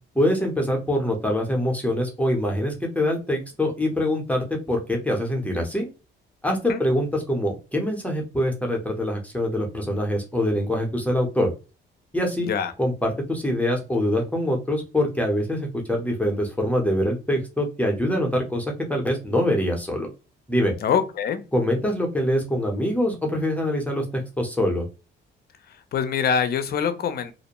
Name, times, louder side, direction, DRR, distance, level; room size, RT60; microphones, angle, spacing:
voice 1, 0.1-5.9 6.4-11.5 12.1-12.5 12.8-20.1 20.5-20.7 21.5-24.9, left 1 dB, 5° left, 0.7 m, -24 dB
voice 2, 12.4-12.7 20.8-21.4 25.9-27.3, left 7 dB, 55° left, 0.5 m, -24 dB
2.5 x 2.1 x 2.9 m
cardioid pair, 90°, 20 cm